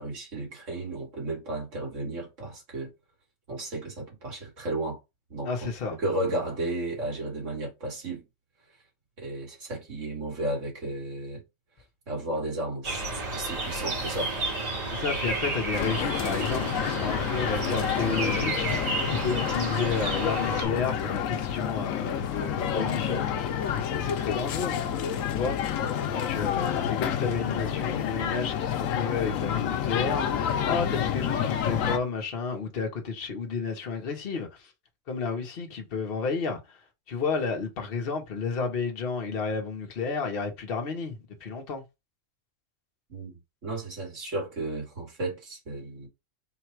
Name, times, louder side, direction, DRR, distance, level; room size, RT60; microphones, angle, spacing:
voice 1, 0.0-2.9 3.5-5.0 5.3-5.7 6.0-8.2 9.2-11.4 12.1-14.3 43.1-43.3 43.6-46.1, right 1 dB, 65° right, 2.2 m, -33 dB
voice 2, 5.4-6.0 14.9-23.3 23.7-24.7 25.3-25.6 26.1-34.7 35.1-36.8 37.1-41.8, left 5 dB, 50° left, 1.1 m, -32 dB
sound 1, 12.8-20.7, right 2 dB, 85° right, 2.1 m, -31 dB
sound 2, 15.7-32.0, left 9 dB, 85° left, 1.0 m, -29 dB
3.9 x 2.3 x 4.4 m
omnidirectional pair, 1.4 m